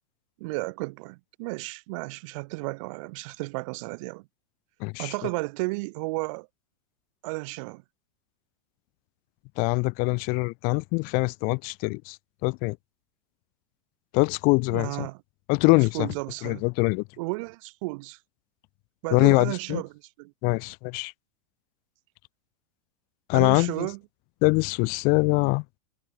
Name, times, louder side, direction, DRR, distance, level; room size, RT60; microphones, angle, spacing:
voice 1, 0.4-4.3 5.0-6.5 7.2-7.8 14.7-15.2 15.9-16.6 17.2-18.2 19.0-19.9 20.2-20.3 23.3-24.0, right 26 dB, 60° right, 2.1 m, -33 dB
voice 2, 4.8-5.1 9.6-12.2 12.4-12.8 14.1-15.1 15.5-16.1 16.4-17.0 19.1-19.8 20.4-21.1 23.3-23.9 24.4-25.6, left 31 dB, 50° left, 1.7 m, -23 dB
hypercardioid pair, 115°, 19 cm